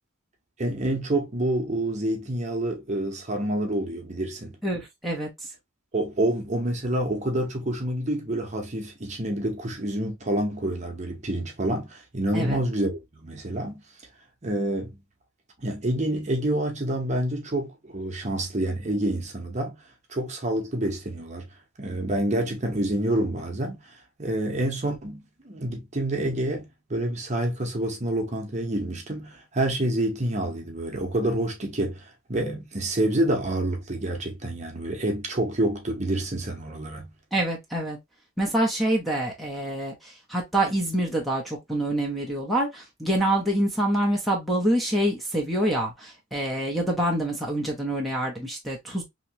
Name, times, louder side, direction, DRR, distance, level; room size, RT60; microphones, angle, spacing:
voice 1, 0.6-4.6 5.9-13.8 14.4-15.0 15.6-19.8 20.1-21.4 21.8-23.8 24.2-37.1, right 1 dB, 35° right, 0.9 m, -28 dB
voice 2, 4.6-5.3 12.3-12.6 37.3-38.0 38.4-49.0, right 1 dB, ahead, 0.7 m, -26 dB
3.0 x 2.9 x 2.7 m
head